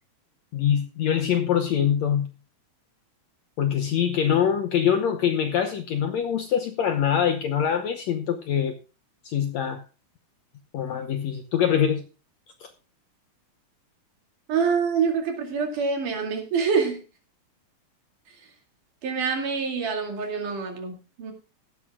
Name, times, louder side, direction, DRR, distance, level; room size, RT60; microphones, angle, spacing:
voice 1, 0.5-2.3 3.6-8.7 9.2-9.8 10.7-12.0 12.6-12.7, left 8 dB, 70° left, 7 dB, 1.7 m, -24 dB
voice 2, 14.5-17.0 18.4-18.5 19.0-21.3, right 5 dB, 65° right, 3 dB, 3.9 m, -26 dB
16.0 x 12.5 x 2.3 m, 0.32 s
omnidirectional pair, 4.1 m